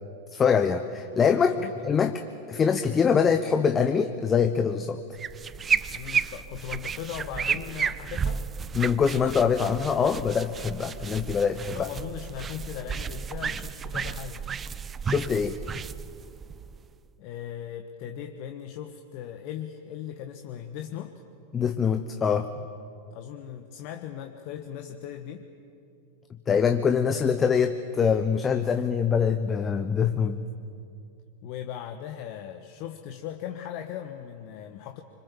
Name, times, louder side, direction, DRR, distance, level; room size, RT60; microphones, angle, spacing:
voice 1, 0.3-1.5 1.8-2.1 2.5-5.0 8.7-11.9 15.0-15.6 21.5-22.5 26.5-30.4, left 6 dB, 20° left, 8 dB, 1.0 m, -24 dB
voice 2, 1.4-1.7 5.9-8.4 11.7-14.5 17.2-21.2 23.1-25.5 31.4-35.0, left 10 dB, 45° left, 5 dB, 1.3 m, -38 dB
sound 1, 5.1-17.1, right 6 dB, 20° right, 0.5 m, -32 dB
26.0 x 25.0 x 7.3 m, 2.5 s
figure-of-eight pair, 90°, 0 cm